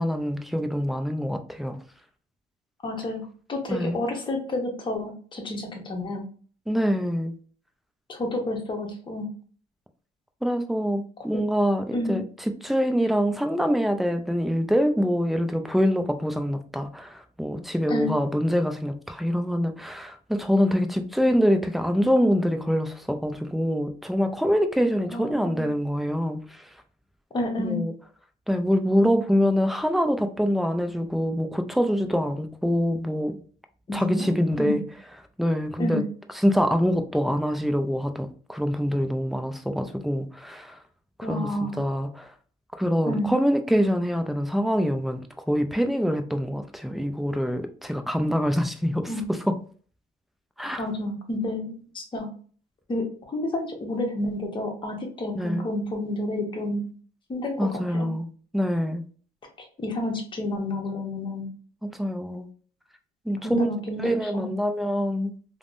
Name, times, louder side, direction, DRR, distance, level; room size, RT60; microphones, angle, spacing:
voice 1, 0.0-1.8 3.7-4.0 6.7-7.3 10.4-26.7 27.6-27.9 28.5-33.4 33.9-34.8 35.4-36.0 36.4-40.8 41.2-42.3 42.8-49.1 50.6-50.8 55.3-55.6 57.6-58.3 58.5-59.0 61.8-62.5 63.3-63.7 64.0-65.3, equal, ahead, 7 dB, 0.3 m, -25 dB
voice 2, 2.8-6.2 8.1-9.3 11.9-12.2 17.9-18.1 25.1-25.7 27.3-27.8 33.9-34.3 34.6-34.8 35.8-36.0 41.2-41.8 43.1-43.3 49.1-49.2 50.8-52.3 52.9-56.8 57.3-58.1 59.6-61.5 63.4-64.5, left 1 dB, 30° left, 2 dB, 0.8 m, -30 dB
3.4 x 2.0 x 2.5 m, 0.43 s
cardioid pair, 110°, 17 cm